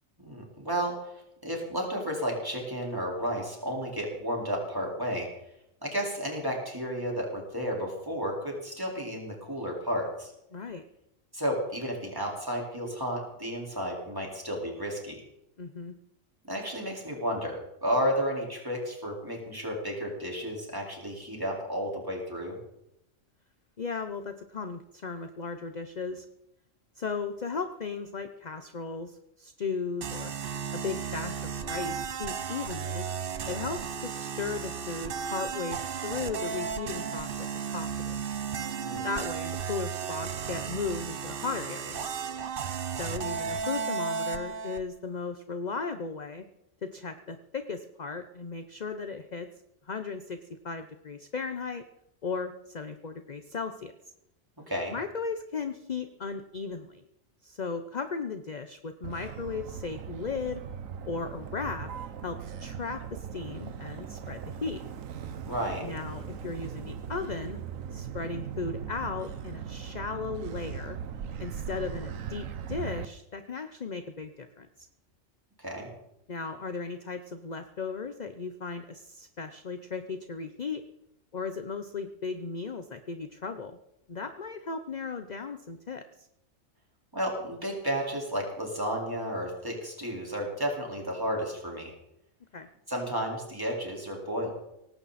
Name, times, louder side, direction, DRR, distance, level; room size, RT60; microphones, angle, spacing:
voice 1, 0.2-1.2 1.4-5.3 5.8-10.3 11.3-15.2 16.5-22.6 38.8-39.1 54.7-55.0 65.4-65.8 75.6-75.9 87.1-91.9 92.9-94.5, equal, 15° right, -2 dB, 4.5 m, -32 dB
voice 2, 10.5-10.8 15.6-15.9 23.8-26.3 27.0-30.3 30.7-33.0 33.5-38.2 39.0-42.1 43.0-46.4 46.8-49.5 49.9-50.4 50.6-51.8 52.2-53.9 54.9-57.0 57.4-60.6 61.0-61.9 62.2-64.8 65.8-67.6 67.9-71.0 71.4-74.7 76.3-80.8 81.3-83.8 84.1-86.3 92.5-92.7, left 4 dB, 40° left, 9 dB, 0.9 m, -36 dB
sound 1, 30.0-44.8, right 6 dB, 50° right, 1.0 m, -34 dB
Motor vehicle (road), 59.0-73.1, right 7 dB, 85° right, 1.3 m, -39 dB
18.0 x 16.0 x 4.3 m, 0.83 s
omnidirectional pair, 1.3 m